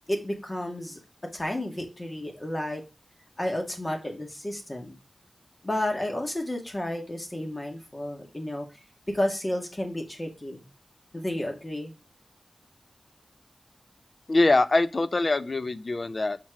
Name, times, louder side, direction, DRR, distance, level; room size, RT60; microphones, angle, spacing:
voice 1, 0.1-1.0 1.3-2.8 3.4-5.0 5.6-10.6 11.1-11.9, left 1 dB, 30° left, 1.9 m, -32 dB
voice 2, 14.3-16.4, left 2 dB, 55° left, 0.5 m, -23 dB
6.0 x 4.3 x 4.7 m
wide cardioid pair, 60°, 0 cm